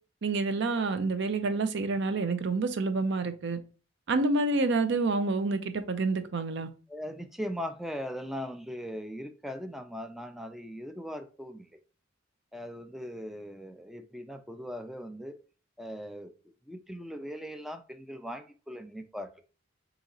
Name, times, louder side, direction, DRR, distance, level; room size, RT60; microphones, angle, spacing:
voice 1, 0.2-3.6 4.1-6.7, right 3 dB, 60° right, 0.5 m, -28 dB
voice 2, 6.6-11.7 12.5-15.4 15.8-16.3 16.7-19.3, equal, ahead, 0.4 m, -39 dB
4.1 x 2.9 x 3.7 m
head